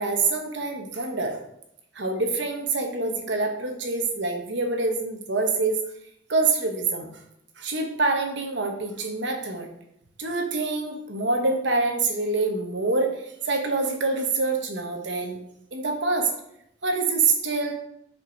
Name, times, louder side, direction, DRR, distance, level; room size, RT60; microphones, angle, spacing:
voice 1, 0.0-1.4 1.9-5.8 6.3-7.1 7.6-9.7 10.2-15.4 15.7-16.3 16.8-17.7, right 3 dB, 70° right, 3 dB, 1.2 m, -26 dB
6.3 x 5.2 x 4.5 m, 0.76 s
head